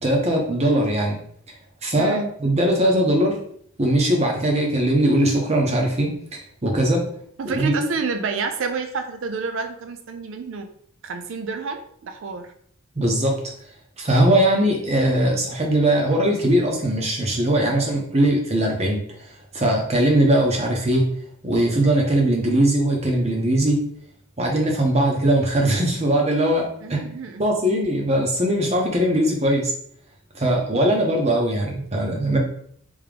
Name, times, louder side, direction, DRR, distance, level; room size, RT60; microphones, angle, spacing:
voice 1, 0.0-1.2 1.8-3.4 3.8-7.0 7.5-7.7 13.0-13.4 14.0-21.1 21.4-23.8 24.4-27.0 27.4-29.7 30.3-32.4, right 1 dB, 30° right, 0 dB, 0.8 m, -20 dB
voice 2, 2.0-2.3 7.4-10.7 11.0-12.5 26.8-27.5, right 4 dB, 60° right, 6 dB, 0.4 m, -29 dB
3.6 x 2.9 x 3.3 m, 0.64 s
head